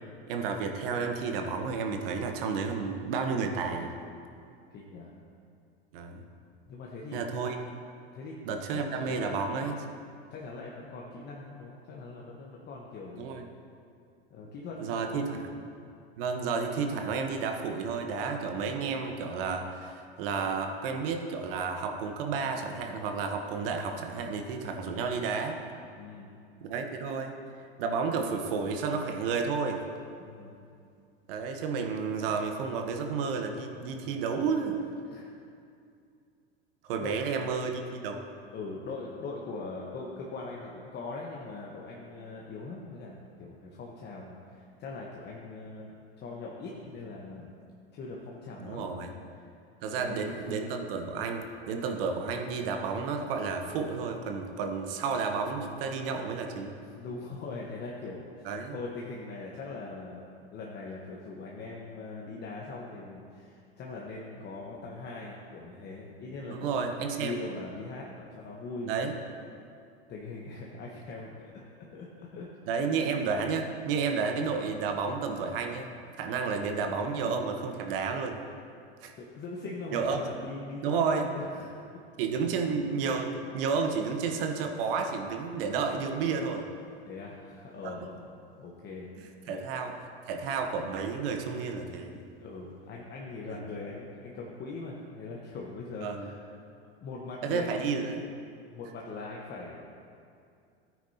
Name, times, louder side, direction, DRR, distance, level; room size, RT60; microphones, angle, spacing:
voice 1, 0.3-3.9 5.9-6.2 7.1-7.6 8.4-9.8 13.2-13.5 14.8-15.4 16.2-25.6 26.6-27.3 27.8-29.8 31.3-34.8 36.8-38.2 48.6-49.1 49.8-56.7 58.4-58.8 66.4-67.4 68.8-69.1 72.7-75.9 76.2-78.4 79.0-79.1 79.9-80.2 80.8-81.3 82.2-86.6 87.8-87.9 89.5-89.9 90.3-92.2 93.5-93.6 96.0-96.3 97.4-98.3, right 5 dB, 60° right, 4 dB, 1.2 m, -31 dB
voice 2, 4.7-5.1 6.7-7.2 8.1-8.4 8.7-9.7 10.3-13.4 14.3-15.3 25.9-26.3 30.2-30.6 35.1-35.3 37.0-37.2 38.5-47.5 47.9-48.9 49.4-49.5 50.0-50.5 56.9-60.3 60.5-66.8 67.1-69.2 70.1-72.5 79.1-82.0 87.1-89.1 89.4-89.6 92.4-96.5 97.0-97.8 98.7-99.8, left 3 dB, 35° left, -3 dB, 1.3 m, -41 dB
13.5 x 9.2 x 2.9 m, 2.4 s
hypercardioid pair, 95°, 31 cm